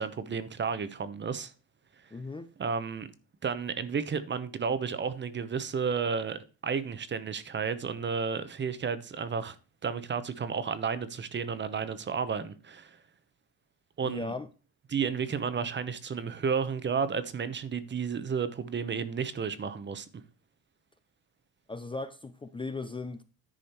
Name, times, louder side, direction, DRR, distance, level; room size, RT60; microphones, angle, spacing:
voice 1, 0.0-1.5 2.6-3.1 3.4-9.6 9.8-13.0 14.0-14.3 14.9-20.1, right 6 dB, 30° right, 0.9 m, -32 dB
voice 2, 2.1-2.5 14.0-14.5 21.7-23.2, left 3 dB, 15° left, 0.6 m, -37 dB
10.5 x 4.9 x 4.4 m
cardioid pair, 125°, 36 cm